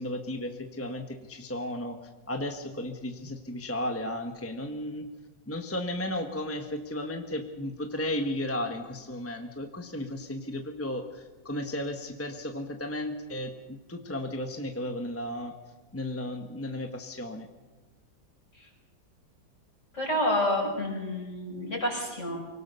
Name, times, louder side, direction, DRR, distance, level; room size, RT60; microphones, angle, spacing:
voice 1, 0.0-2.0 2.3-5.1 5.5-15.6 15.9-17.5, left 1 dB, 10° left, 5 dB, 0.9 m, -34 dB
voice 2, 19.9-22.4, left 1 dB, 35° left, 0 dB, 6.0 m, -29 dB
24.5 x 18.0 x 6.8 m, 1.3 s
omnidirectional pair, 2.2 m